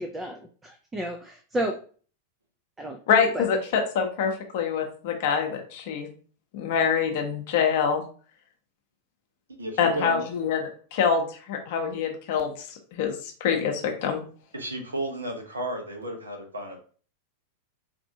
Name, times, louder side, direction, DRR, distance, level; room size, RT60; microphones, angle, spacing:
voice 1, 0.0-1.8 2.8-3.0 3.3-3.4, right 1 dB, 15° right, 3 dB, 0.4 m, -32 dB
voice 2, 3.1-6.1 6.5-8.0 9.8-12.5 12.9-13.1 13.4-14.2, left 6 dB, 50° left, 3 dB, 0.7 m, -25 dB
voice 3, 9.5-10.2 14.5-16.8, right 1 dB, 75° right, 4 dB, 0.8 m, -33 dB
4.3 x 2.6 x 2.7 m, 0.42 s
figure-of-eight pair, 90°, 0 cm